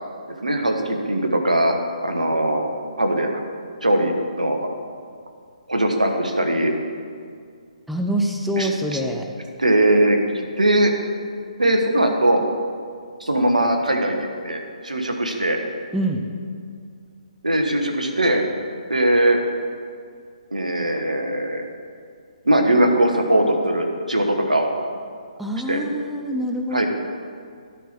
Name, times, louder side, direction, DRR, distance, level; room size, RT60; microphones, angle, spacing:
voice 1, 0.4-1.7 2.0-2.7 3.0-3.3 3.8-4.7 5.7-6.7 8.6-9.0 9.6-10.9 11.6-12.4 13.2-14.2 14.4-15.6 17.4-18.4 18.9-19.4 20.5-21.6 22.4-24.7 25.7-25.8 26.7-26.9, right 1 dB, 80° right, 4 dB, 1.2 m, -20 dB
voice 2, 7.9-9.3 15.9-16.2 25.4-26.9, right 1 dB, ahead, 1 dB, 0.5 m, -25 dB
12.0 x 4.4 x 6.0 m, 2.2 s
figure-of-eight pair, 135°, 4 cm